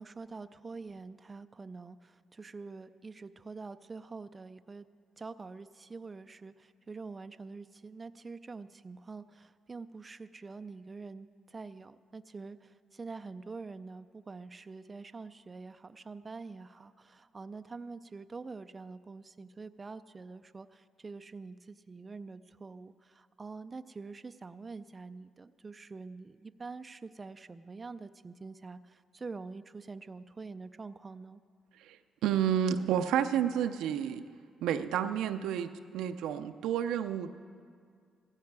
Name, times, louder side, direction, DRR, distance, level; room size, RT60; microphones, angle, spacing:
voice 1, 0.0-4.9 5.2-31.4, right 4 dB, 30° right, 11 dB, 0.4 m, -46 dB
voice 2, 31.8-34.3 34.6-37.3, right 9 dB, 85° right, 9 dB, 0.5 m, -30 dB
16.5 x 14.5 x 4.7 m, 2.1 s
cardioid pair, 90°, 0 cm